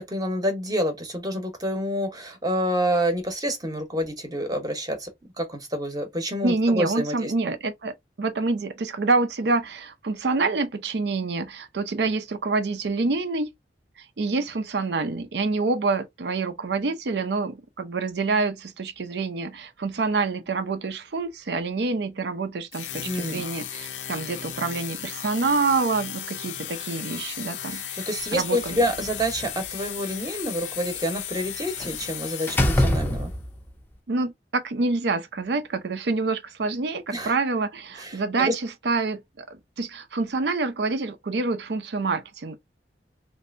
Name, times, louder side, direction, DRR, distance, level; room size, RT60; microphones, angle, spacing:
voice 1, 0.0-5.1 5.4-7.3 23.0-23.4 27.7-33.3 37.1-37.3 38.0-38.5, equal, 20° right, 0.8 m, -28 dB
voice 2, 6.4-13.5 14.0-28.0 28.3-28.8 34.1-42.6, right 3 dB, 65° right, 0.5 m, -27 dB
sound 1, 22.7-33.3, left 9 dB, 90° left, 0.6 m, -36 dB
Slam, 28.6-29.7 31.8-32.0 32.5-33.7, left 1 dB, 10° left, 0.5 m, -25 dB
3.2 x 2.6 x 2.5 m
head